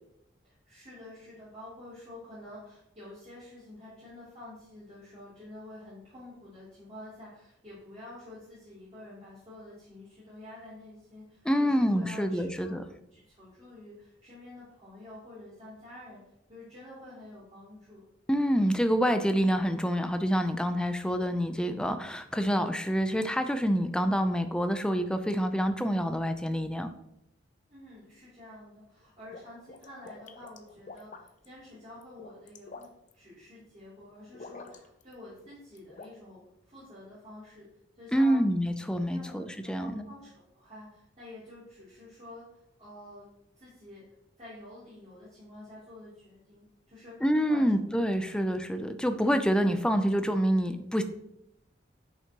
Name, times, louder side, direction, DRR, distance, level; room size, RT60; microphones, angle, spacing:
voice 1, 0.4-12.8 13.1-18.0 27.7-36.4 36.7-37.7 37.9-38.4 39.1-43.3 43.5-44.0 44.4-47.7, left 1 dB, 35° right, -11 dB, 3.0 m, -49 dB
voice 2, 11.5-12.8 18.3-26.9 38.1-40.1 47.2-51.0, equal, 5° left, 8 dB, 0.5 m, -27 dB
sound 1, 29.0-31.5 32.0-33.1 34.3-35.1 35.4-36.1, left 3 dB, 40° left, 0.6 m, -47 dB
9.4 x 5.6 x 2.9 m, 0.79 s
head